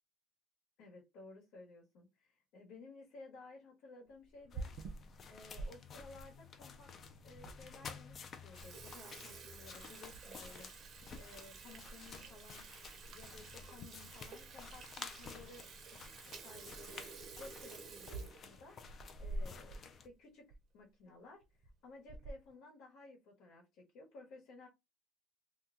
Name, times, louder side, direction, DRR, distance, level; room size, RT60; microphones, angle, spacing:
voice 1, 0.8-4.7 5.3-12.7 13.0-17.0 17.4-18.9 19.2-20.5 20.7-24.7, left 2 dB, 65° left, -2 dB, 1.2 m, -56 dB
Water tap faucet / Sink (filling or washing), 4.2-5.7 6.2-6.3 7.0-7.1 7.4-7.5 7.9-8.1 8.4-19.8 20.1-20.2 20.5-20.6 21.4-21.7 22.1-22.5, right 2 dB, 40° right, 0.6 m, -49 dB
sound 1, 4.5-20.1, left 5 dB, 30° left, 0.4 m, -53 dB
2.8 x 2.3 x 3.7 m, 0.23 s
cardioid pair, 160°, 0 cm